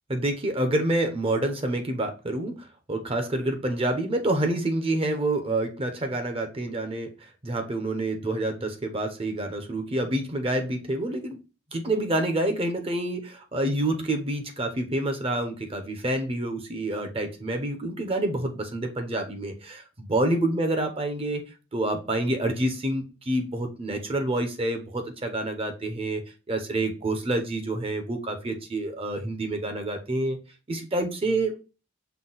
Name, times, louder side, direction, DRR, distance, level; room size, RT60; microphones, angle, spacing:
voice 1, 0.1-2.5 2.9-7.1 7.4-11.4 11.7-21.4 21.7-26.2 26.5-30.4 30.7-31.5, right 1 dB, 30° right, 5 dB, 0.7 m, -27 dB
5.7 x 2.2 x 3.9 m, 0.31 s
head